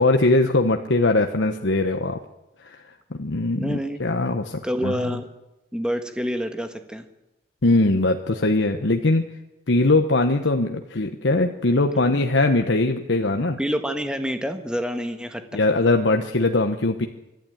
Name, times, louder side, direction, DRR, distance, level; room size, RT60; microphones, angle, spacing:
voice 1, 0.0-2.2 2.6-2.8 3.1-5.0 7.6-9.2 9.7-13.6 15.5-17.1, left 2 dB, 80° left, 5 dB, 1.1 m, -21 dB
voice 2, 3.6-4.0 4.6-5.3 5.7-7.0 13.6-15.4, equal, 5° right, 7 dB, 1.5 m, -27 dB
24.5 x 12.0 x 9.2 m, 0.99 s
head